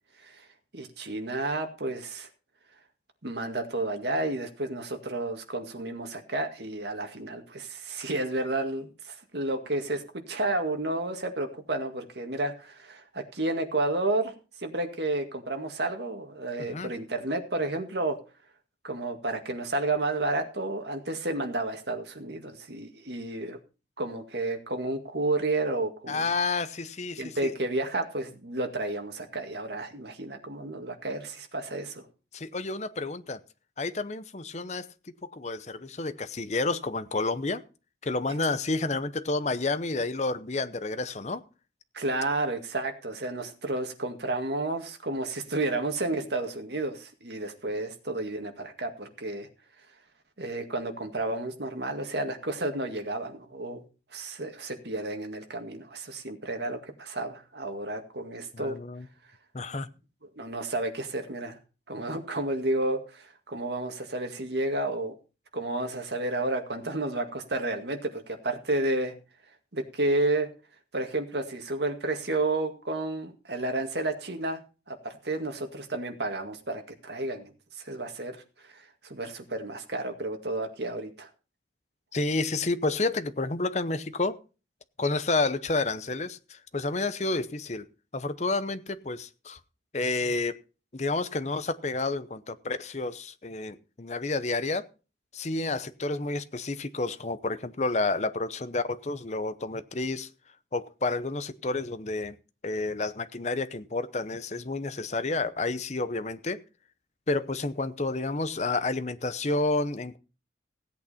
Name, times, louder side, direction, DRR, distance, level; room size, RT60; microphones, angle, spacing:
voice 1, 0.7-2.3 3.2-14.3 14.6-18.2 18.8-23.6 24.0-26.3 27.2-32.1 41.9-49.5 50.4-53.8 54.1-58.8 60.4-61.6 61.9-65.1 65.5-69.1 69.7-70.5 70.9-74.6 74.9-77.5 77.8-78.4 78.7-81.3, right 2 dB, 65° right, 2.1 m, -31 dB
voice 2, 16.6-16.9 26.1-27.5 32.3-33.4 33.8-34.9 35.2-37.6 38.0-41.4 45.7-45.8 46.2-46.3 58.5-59.1 59.5-59.9 82.1-84.4 85.0-87.9 88.1-89.6 89.9-90.6 90.9-94.9 95.3-100.3 100.7-102.4 102.6-106.6 107.3-110.2, left 3 dB, 40° left, 0.8 m, -30 dB
16.5 x 8.5 x 4.3 m
head